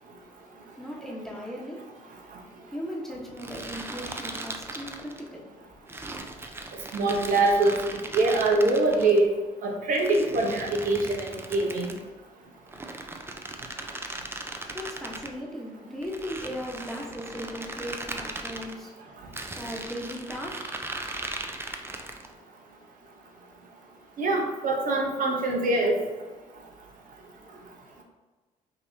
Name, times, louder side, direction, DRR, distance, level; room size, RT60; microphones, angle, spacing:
voice 1, 0.8-1.9 2.6-6.0 14.7-20.9 21.4-21.7, equal, ahead, -3 dB, 1.2 m, -38 dB
sound 1, 3.4-5.3 5.9-9.2 9.9-12.1 12.7-15.3 16.0-18.7 19.3-22.3, right 2 dB, 15° right, 0.5 m, -38 dB
voice 2, 6.9-7.8 8.1-9.3 9.6-11.9 24.2-26.0, right 2 dB, 65° right, 1 dB, 0.9 m, -24 dB
5.3 x 2.8 x 2.8 m, 1.3 s
supercardioid pair, 70°, 15 cm